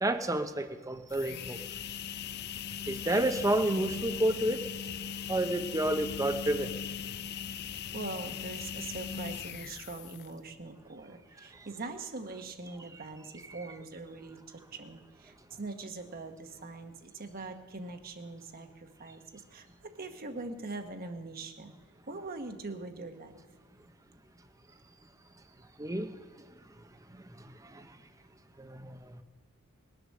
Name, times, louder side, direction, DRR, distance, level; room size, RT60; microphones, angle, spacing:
voice 1, 0.0-1.6 2.9-4.6 5.3-6.7 25.8-26.1 28.6-28.8, right 1 dB, 15° right, 9 dB, 0.7 m, -29 dB
sound 1, 1.0-10.5, left 8 dB, 50° left, 0.4 m, -39 dB
voice 2, 7.9-21.7 22.1-23.4, right 3 dB, 45° right, 6 dB, 1.1 m, -42 dB
20.0 x 8.1 x 6.5 m, 1.4 s
head